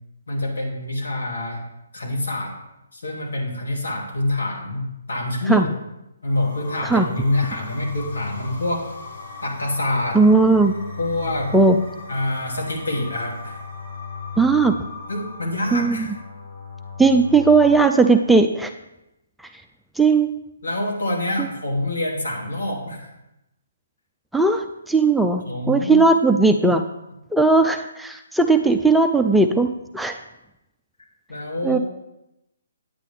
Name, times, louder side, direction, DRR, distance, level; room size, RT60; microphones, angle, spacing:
voice 1, 0.3-1.6 1.9-2.5 2.9-5.7 6.2-8.9 9.4-10.2 11.0-11.5 12.1-13.6 15.1-16.1 20.6-23.1 25.4-26.0 31.3-31.8, left 1 dB, 75° left, -2 dB, 2.7 m, -26 dB
sound 1, 6.3-17.8, left 4 dB, 55° left, 3.6 m, -37 dB
voice 2, 10.1-10.7 11.5-11.8 14.4-14.7 15.7-16.0 17.0-18.7 20.0-20.3 21.4-21.5 24.3-26.8 27.3-29.7 29.9-30.2 31.6-31.8, right 3 dB, ahead, 5 dB, 0.4 m, -17 dB
9.2 x 9.1 x 3.4 m, 0.89 s
figure-of-eight pair, 140°, 0 cm